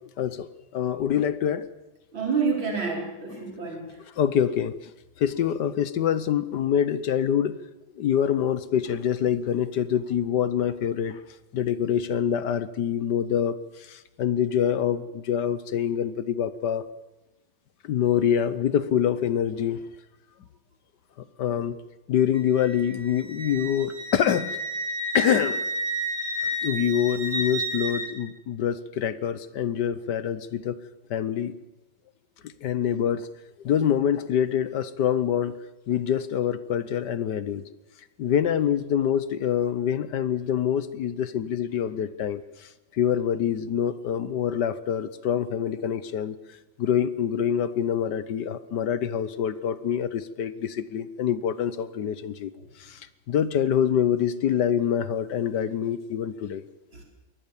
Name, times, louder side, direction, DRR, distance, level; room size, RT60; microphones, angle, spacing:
voice 1, 0.2-1.7 3.4-3.5 4.2-4.8 5.2-7.6 8.0-11.2 11.5-16.9 17.8-19.8 21.4-21.8 22.1-24.6 25.1-25.7 26.6-30.8 31.1-31.6 32.4-33.3 33.6-35.5 35.9-37.7 38.2-46.4 46.8-52.5 52.8-56.6, left 9 dB, 65° left, 15 dB, 1.4 m, -25 dB
voice 2, 2.1-4.0 52.6-52.7 56.9-57.0, right 5 dB, 90° right, 1 dB, 5.2 m, -28 dB
Wind instrument woodwind instrument, 22.3-28.1, right 1 dB, 40° right, 3.9 m, -31 dB
22.5 x 18.0 x 7.2 m, 0.98 s
omnidirectional pair, 2.1 m